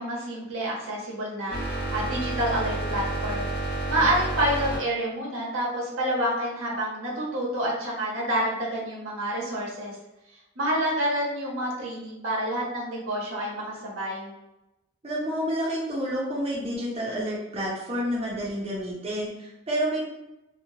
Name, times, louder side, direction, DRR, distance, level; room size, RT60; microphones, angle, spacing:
voice 1, 0.0-3.5 3.9-10.0 10.6-14.3, right 1 dB, 80° right, -4 dB, 1.0 m, -28 dB
sound 1, 1.5-4.8, right 2 dB, 50° left, 1.0 m, -30 dB
voice 2, 15.0-20.0, equal, 30° right, -5 dB, 0.6 m, -29 dB
2.9 x 2.1 x 2.7 m, 0.95 s
head